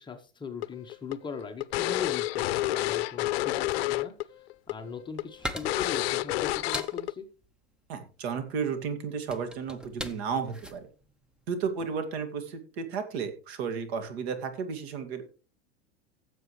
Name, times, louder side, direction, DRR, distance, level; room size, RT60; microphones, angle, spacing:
voice 1, 0.0-4.1 4.7-7.3, left 6 dB, 15° left, 5 dB, 1.0 m, -39 dB
sound 1, 0.6-4.2 4.5-4.7 5.2-5.3 5.7-7.1, left 16 dB, 60° left, 0.6 m, -29 dB
sound 2, 4.6-12.0, equal, 5° right, 0.6 m, -42 dB
voice 2, 7.9-10.9 11.5-15.3, right 6 dB, 65° right, 7 dB, 2.3 m, -33 dB
16.0 x 7.4 x 3.2 m, 0.35 s
supercardioid pair, 135°, 34 cm